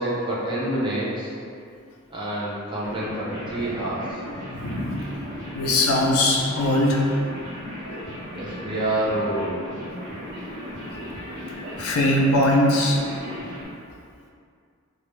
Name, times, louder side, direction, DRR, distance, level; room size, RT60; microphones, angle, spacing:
voice 1, 0.0-1.3 2.1-4.2 8.3-9.6, right 1 dB, 20° right, -7 dB, 0.4 m, -27 dB
sound 1, 2.8-13.7, equal, 55° right, 1.0 m, -36 dB
voice 2, 4.5-5.1 5.5-7.0 11.8-13.0, left 1 dB, 80° left, -2 dB, 0.4 m, -21 dB
2.1 x 2.1 x 3.1 m, 2.3 s
head